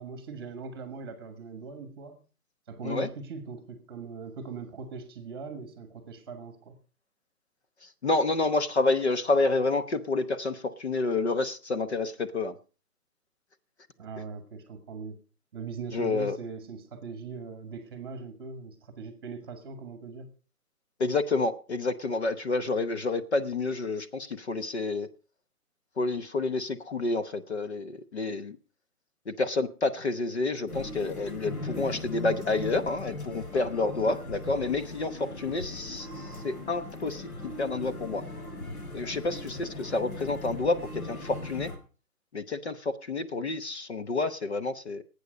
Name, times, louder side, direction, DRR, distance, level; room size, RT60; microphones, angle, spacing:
voice 1, 0.0-2.2 2.7-6.8 14.0-15.2 15.5-20.3, right 4 dB, 15° right, 9 dB, 1.4 m, -40 dB
voice 2, 7.8-12.6 15.9-16.4 21.0-25.1 26.0-28.6 29.3-38.2 38.9-41.7 42.3-45.0, left 3 dB, 45° left, 10 dB, 1.0 m, -29 dB
sound 1, 30.7-41.8, left 2 dB, 70° left, 4.9 m, -39 dB
18.5 x 8.6 x 5.1 m, 0.37 s
hypercardioid pair, 170°, 46 cm